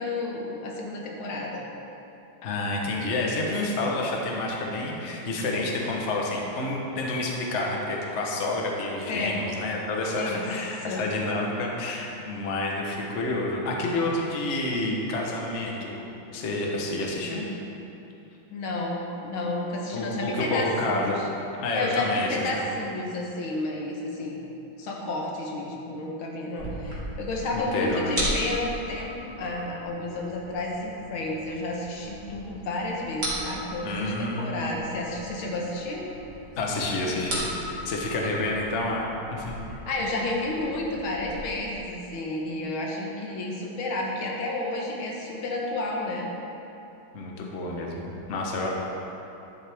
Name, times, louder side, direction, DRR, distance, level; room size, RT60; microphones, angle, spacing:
voice 1, 0.0-1.6 9.1-9.4 10.2-10.4 10.8-11.0 18.5-21.3 21.7-24.4 24.8-36.0 39.6-46.3, left 2 dB, 80° left, -2 dB, 2.0 m, -31 dB
voice 2, 2.4-16.0 16.3-17.5 19.9-21.2 21.6-22.6 27.5-28.1 33.8-34.6 36.6-39.5 47.1-48.7, left 2 dB, 45° left, -1 dB, 1.1 m, -29 dB
sound 1, 26.6-41.4, equal, 35° right, 2.2 m, -37 dB
11.0 x 7.6 x 3.5 m, 2.9 s
omnidirectional pair, 2.2 m